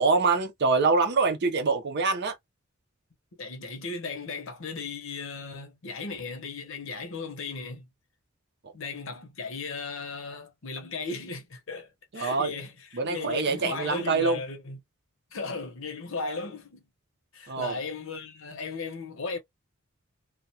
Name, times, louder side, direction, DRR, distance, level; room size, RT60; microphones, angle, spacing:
voice 1, 0.0-2.4 12.1-12.5 12.9-14.4 17.5-17.8, right 4 dB, 50° right, 0.6 m, -25 dB
voice 2, 3.4-7.9 8.7-14.8 15.3-16.8 17.3-19.4, left 4 dB, 65° left, 0.8 m, -36 dB
2.3 x 2.2 x 2.7 m
head